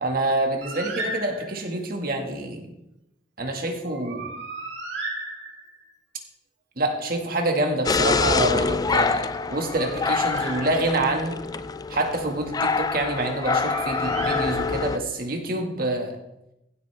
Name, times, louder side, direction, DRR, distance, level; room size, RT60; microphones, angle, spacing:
voice 1, 0.0-2.7 3.4-4.3 6.8-11.4 11.9-16.1, right 2 dB, 55° right, 2 dB, 1.8 m, -26 dB
Bird, 0.6-1.8 3.8-5.9 9.3-11.2 13.2-15.1, right 2 dB, 85° right, 2.0 m, -36 dB
sound 1, 7.9-15.0, left 4 dB, 20° left, 0.3 m, -25 dB
15.0 x 8.2 x 3.4 m, 0.86 s
head